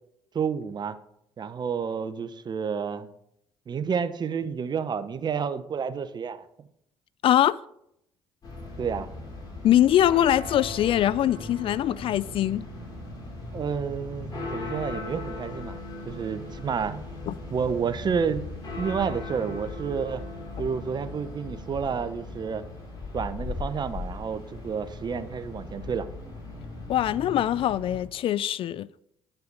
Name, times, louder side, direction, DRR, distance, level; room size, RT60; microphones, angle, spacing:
voice 1, 0.3-1.0 1.4-3.1 3.7-6.4 8.8-9.1 13.5-15.8 16.1-17.0 17.5-18.4 18.8-20.3 20.6-22.6 23.1-26.1, right 6 dB, 40° right, 0.8 m, -30 dB
voice 2, 7.2-7.6 9.6-12.6 17.3-17.4 26.9-28.9, left 12 dB, 55° left, 0.3 m, -22 dB
sound 1, 8.4-28.0, left 2 dB, 40° left, 4.2 m, -38 dB
9.5 x 5.7 x 5.3 m
supercardioid pair, 70°, 11 cm